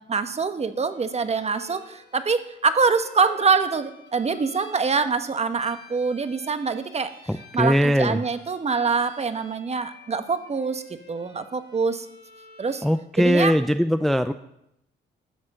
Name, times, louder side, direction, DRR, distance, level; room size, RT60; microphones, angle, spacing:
voice 1, 0.1-7.1 7.5-10.8 11.1-12.1 12.6-12.8 13.2-13.5, right 5 dB, 35° right, 10 dB, 1.1 m, -24 dB
Bowed string instrument, 0.9-13.0, left 3 dB, 65° left, 4.3 m, -50 dB
voice 2, 7.3-8.2 12.8-14.3, equal, ahead, 10 dB, 0.4 m, -21 dB
12.5 x 6.1 x 7.7 m, 0.80 s
cardioid pair, 90°, 20 cm